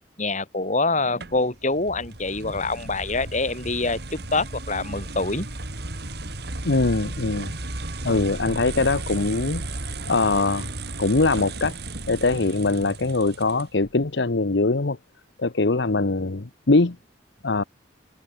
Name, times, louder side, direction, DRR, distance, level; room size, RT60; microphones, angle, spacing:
voice 1, 0.2-5.5 8.1-8.2, left 3 dB, 40° left, 6.7 m, -25 dB
sound 1, 1.2-13.9, right 2 dB, 65° right, 3.4 m, -34 dB
voice 2, 6.6-7.5 8.0-9.6 10.1-10.7 11.0-11.8 12.1-15.0 15.4-17.0 17.4-17.6, left 3 dB, 75° left, 1.0 m, -22 dB
head